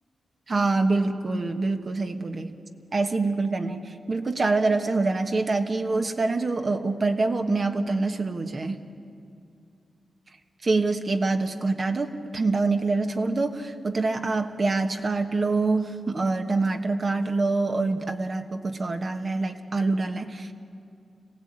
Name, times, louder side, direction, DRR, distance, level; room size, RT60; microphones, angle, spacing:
voice 1, 0.5-2.6 2.9-8.8 10.6-20.5, right 3 dB, 45° right, 5 dB, 1.3 m, -25 dB
26.5 x 17.0 x 8.8 m, 2.4 s
wide cardioid pair, 115°, 0 cm